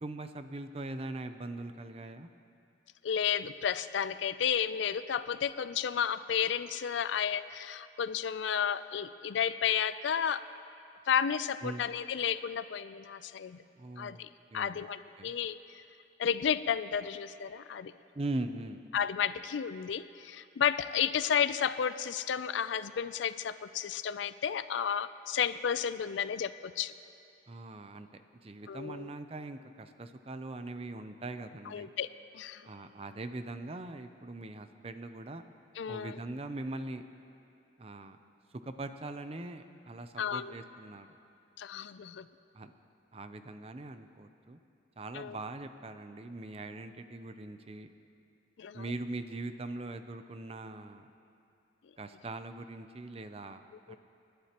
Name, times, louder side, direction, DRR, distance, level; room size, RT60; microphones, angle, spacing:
voice 1, 0.0-2.3 11.6-11.9 13.7-14.2 14.5-14.9 15.2-15.3 18.1-18.8 27.5-31.9 32.6-35.4 35.9-37.0 37.8-38.2 38.5-41.2 42.5-42.7 43.1-44.6 45.0-47.9 48.7-51.1 52.0-54.0, right 2 dB, 30° right, 9 dB, 0.5 m, -41 dB
voice 2, 3.0-10.4 11.1-13.6 14.0-14.3 14.5-15.8 16.2-17.9 18.9-26.9 28.7-29.0 31.7-32.1 32.3-32.6 35.8-36.1 40.2-40.5 41.6-42.3 45.1-45.4 48.6-48.8 53.9-54.0, left 8 dB, 75° left, 14 dB, 0.4 m, -32 dB
29.0 x 11.5 x 3.0 m, 2.6 s
head